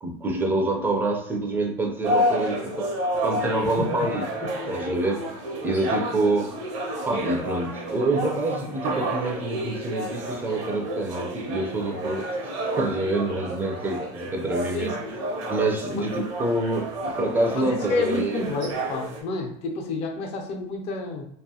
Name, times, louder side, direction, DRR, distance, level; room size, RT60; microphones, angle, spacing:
voice 1, 0.0-2.9 3.2-4.2 4.7-5.2 5.6-6.5 7.0-12.3 12.8-14.9 15.5-16.9 17.2-18.4, right 2 dB, 15° right, 2 dB, 0.4 m, -26 dB
sound 1, 2.0-19.2, right 1 dB, 80° right, 0.8 m, -30 dB
voice 2, 14.7-15.1 15.9-16.1 17.5-21.2, left 3 dB, 45° left, 2 dB, 0.6 m, -29 dB
2.5 x 2.3 x 2.7 m, 0.69 s
supercardioid pair, 145°, 15 cm